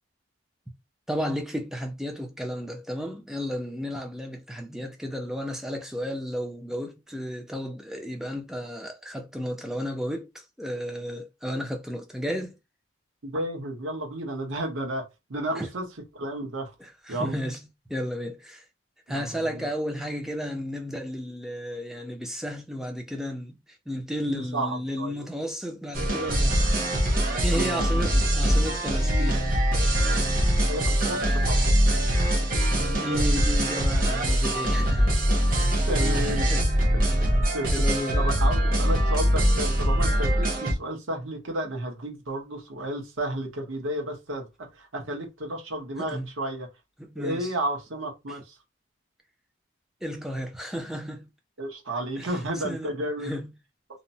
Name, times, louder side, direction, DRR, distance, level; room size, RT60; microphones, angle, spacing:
voice 1, 1.1-12.6 15.6-15.7 16.8-17.6 17.9-18.6 19.1-23.6 23.9-26.7 27.4-29.4 32.7-35.1 36.2-36.7 37.7-38.2 46.0-46.3 47.0-47.5 50.0-51.3 52.2-52.3 52.6-52.9 53.2-53.5, equal, ahead, 0.4 m, -33 dB
voice 2, 13.2-15.0 15.3-15.9 16.1-16.7 17.1-17.4 19.1-19.7 24.3-25.3 27.5-28.0 30.7-31.7 35.9-36.5 37.0-37.1 37.5-37.8 38.1-46.7 47.2-48.6 51.6-53.4, right 1 dB, 70° right, 0.9 m, -32 dB
sound 1, 25.9-40.7, equal, 45° right, 1.0 m, -23 dB
2.9 x 2.0 x 2.7 m
head